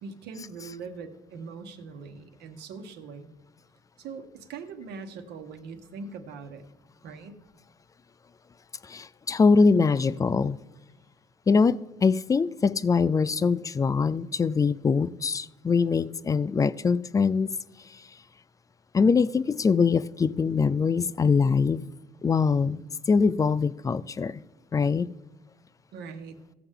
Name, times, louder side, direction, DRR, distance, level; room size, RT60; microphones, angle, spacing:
voice 1, 0.0-3.3 4.0-6.6 7.0-7.4 10.1-10.2 25.9-26.4, right 5 dB, 80° right, 1.2 m, -41 dB
voice 2, 8.8-10.6 11.5-17.5 17.9-18.0 18.9-21.8 22.2-22.8 23.1-24.4 24.7-25.1, left 5 dB, 20° left, 0.3 m, -23 dB
16.5 x 6.8 x 3.7 m
cardioid pair, 110°, 17 cm